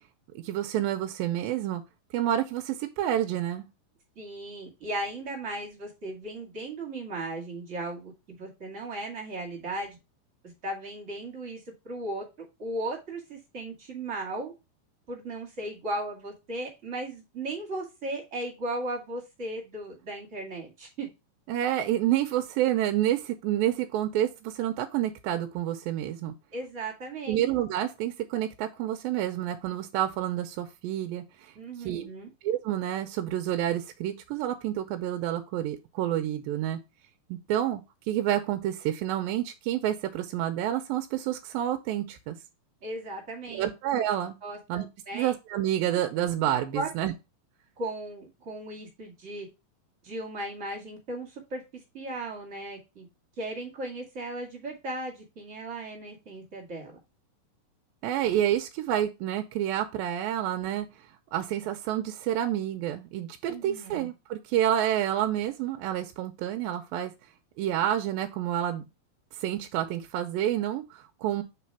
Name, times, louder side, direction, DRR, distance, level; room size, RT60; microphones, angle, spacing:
voice 1, 0.4-1.8 2.1-3.7 21.5-26.3 27.3-31.5 31.9-32.1 32.4-36.8 37.3-37.8 38.1-42.4 43.5-44.4 44.7-44.9 45.1-47.1 58.0-60.9 61.3-67.1 67.6-68.8 69.3-71.4, right 12 dB, 85° right, 7 dB, 2.3 m, -29 dB
voice 2, 4.1-8.1 8.4-10.0 10.4-14.5 15.1-21.1 26.5-27.4 31.5-32.3 42.8-43.7 44.4-45.3 46.7-46.9 47.8-49.5 50.0-51.6 51.9-53.1 53.4-57.0 63.5-64.1, right 2 dB, 30° right, -1 dB, 1.7 m, -36 dB
4.6 x 4.1 x 5.6 m, 0.26 s
omnidirectional pair, 4.1 m